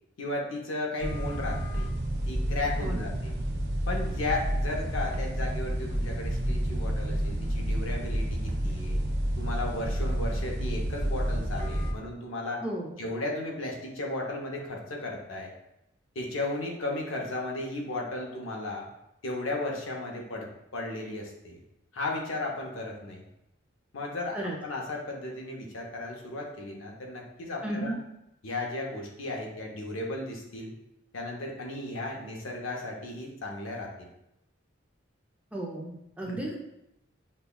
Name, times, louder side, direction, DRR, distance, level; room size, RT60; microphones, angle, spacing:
voice 1, 0.2-1.9 2.3-3.3 3.9-9.0 9.4-12.6 13.0-15.5 16.1-18.9 19.2-21.6 21.9-23.2 23.9-28.0 28.4-30.7 31.1-34.1 36.2-36.4, left 2 dB, 85° left, 0 dB, 0.7 m, -35 dB
sound 1, 1.0-11.9, right 1 dB, 55° right, 0.6 m, -30 dB
voice 2, 2.8-3.1 12.6-13.0 24.3-24.5 27.6-28.0 35.5-36.5, right 1 dB, 5° right, -3 dB, 0.5 m, -34 dB
5.4 x 2.2 x 2.3 m, 0.84 s
head